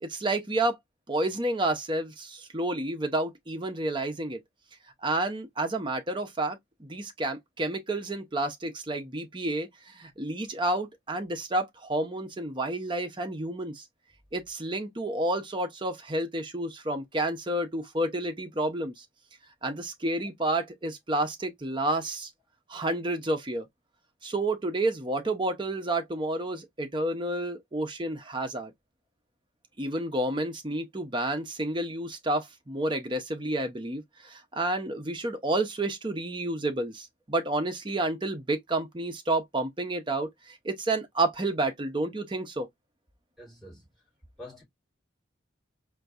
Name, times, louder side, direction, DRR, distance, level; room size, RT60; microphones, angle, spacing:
voice 1, 0.0-0.8 1.1-4.4 5.0-13.8 14.3-19.0 19.6-22.3 22.7-23.7 24.2-28.7 29.8-42.7, right 2 dB, 25° right, 0.6 m, -30 dB
voice 2, 43.4-43.9 44.4-44.6, left 1 dB, ahead, 3.0 m, -46 dB
4.4 x 2.6 x 2.4 m
head